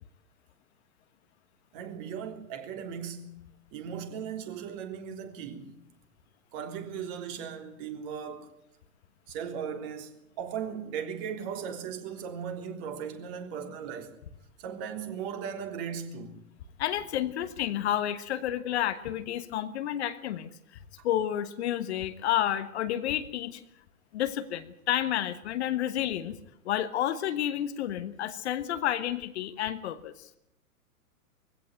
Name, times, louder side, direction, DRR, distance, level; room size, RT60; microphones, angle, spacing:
voice 1, 1.7-3.4 3.7-5.8 6.5-8.5 9.3-14.2 14.6-16.4, right 7 dB, 35° right, 3.4 m, -37 dB
voice 2, 16.8-20.5 21.0-23.6 24.1-26.4 26.6-30.3, left 11 dB, 45° left, 1.4 m, -30 dB
21.0 x 16.5 x 9.1 m
figure-of-eight pair, 110°, 45 cm